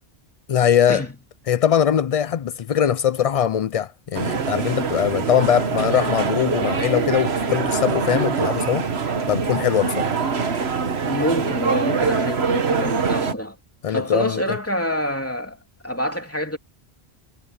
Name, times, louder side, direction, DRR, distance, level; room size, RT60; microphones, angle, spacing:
voice 1, 0.5-1.0 1.5-8.9 9.3-10.2 13.8-14.4, left 9 dB, 60° left, 0.3 m, -21 dB
sound 1, 4.1-13.3, right 5 dB, 70° right, 1.6 m, -23 dB
voice 2, 11.0-13.6 13.9-15.6 15.8-16.6, equal, 10° left, 3.0 m, -26 dB
omnidirectional pair, 1.1 m